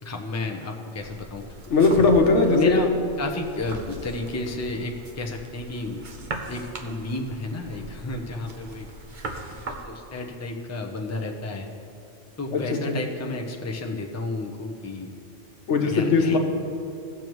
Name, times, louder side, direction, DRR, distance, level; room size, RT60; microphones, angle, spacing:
voice 1, 0.0-1.4 2.4-8.9 9.5-11.7 12.4-15.1 15.8-16.4, left 2 dB, 15° left, 2 dB, 0.6 m, -32 dB
sound 1, 1.0-9.8, right 2 dB, 45° right, 0.9 m, -39 dB
voice 2, 1.7-2.8 12.5-12.6 12.9-13.0 15.7-16.4, left 3 dB, 85° left, 3 dB, 1.3 m, -19 dB
17.5 x 6.9 x 3.1 m, 2.5 s
omnidirectional pair, 1.2 m